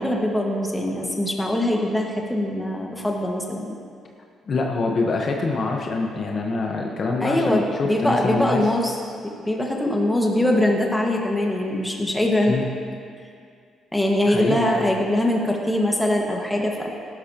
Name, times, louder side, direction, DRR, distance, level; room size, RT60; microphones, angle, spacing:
voice 1, 0.0-3.8 7.2-9.0 9.2-12.6 13.9-16.9, left 1 dB, 10° left, -1 dB, 1.7 m, -22 dB
voice 2, 4.5-8.6 12.5-12.7 14.2-14.9, left 3 dB, 50° left, 1 dB, 1.2 m, -25 dB
16.0 x 12.0 x 3.0 m, 2.3 s
cardioid pair, 90°, 0 cm